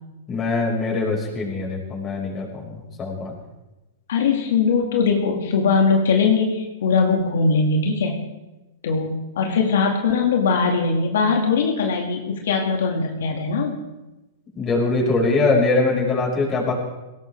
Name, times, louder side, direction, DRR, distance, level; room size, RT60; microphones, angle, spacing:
voice 1, 0.3-3.3 14.5-16.7, left 3 dB, 20° left, -2 dB, 5.9 m, -22 dB
voice 2, 4.1-8.2 8.8-13.8, left 4 dB, 80° left, 1 dB, 2.5 m, -20 dB
22.0 x 18.0 x 3.7 m, 1.0 s
hypercardioid pair, 140°, 0 cm